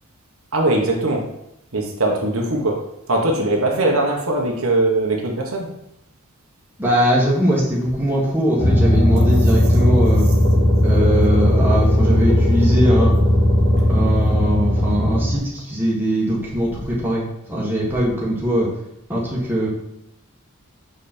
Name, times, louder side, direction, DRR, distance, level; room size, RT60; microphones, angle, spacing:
voice 1, 0.5-1.3 1.7-2.8 3.1-5.7, right 2 dB, 80° right, 0 dB, 1.4 m, -20 dB
voice 2, 6.8-10.2 10.8-13.1 13.9-18.7 19.1-19.7, equal, 10° right, -6 dB, 1.7 m, -21 dB
sound 1, 8.6-15.4, equal, 30° left, 2.9 m, -16 dB
6.2 x 5.3 x 4.4 m, 0.79 s
head